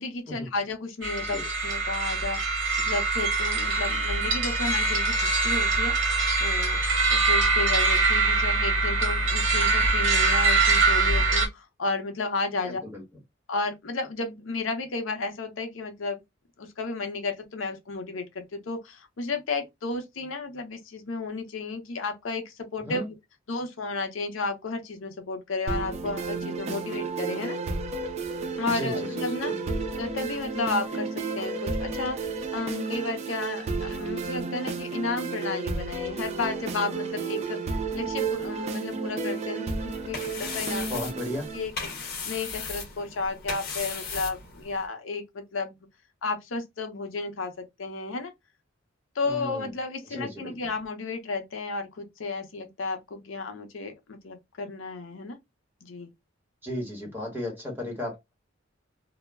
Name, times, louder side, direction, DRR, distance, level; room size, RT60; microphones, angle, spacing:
voice 1, 0.0-2.4 2.8-6.0 6.4-6.8 7.1-12.8 13.5-16.2 16.6-23.1 23.5-27.6 28.6-29.5 30.0-37.6 37.9-40.9 41.5-45.8 46.2-48.3 49.2-55.4 55.8-56.1, left 3 dB, 80° left, 0.6 m, -33 dB
sound 1, 1.0-11.5, right 3 dB, 65° right, 0.7 m, -23 dB
voice 2, 12.6-13.0 22.9-23.1 28.7-29.6 40.9-41.5 49.2-49.7 50.1-50.6 56.6-58.3, left 1 dB, 10° right, 1.1 m, -35 dB
sound 2, 25.7-41.7, right 4 dB, 35° right, 0.4 m, -32 dB
sound 3, 39.7-44.9, left 4 dB, 50° left, 0.9 m, -37 dB
2.2 x 2.0 x 3.3 m
head